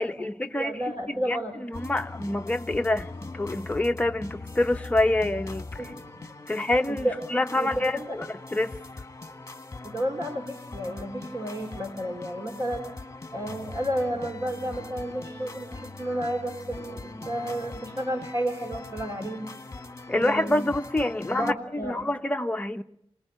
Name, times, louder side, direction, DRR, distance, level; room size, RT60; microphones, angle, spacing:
voice 1, 0.0-0.8 1.1-5.9 6.5-8.8 20.1-22.8, left 1 dB, 15° left, 0.9 m, -27 dB
voice 2, 0.6-1.5 5.8-7.1 7.6-8.1 9.8-12.8 13.3-19.5 20.1-20.6 21.3-22.1, right 1 dB, 35° right, 3.5 m, -32 dB
sound 1, 1.7-21.5, left 3 dB, 30° left, 1.6 m, -41 dB
27.0 x 19.5 x 9.1 m
wide cardioid pair, 105°, 10 cm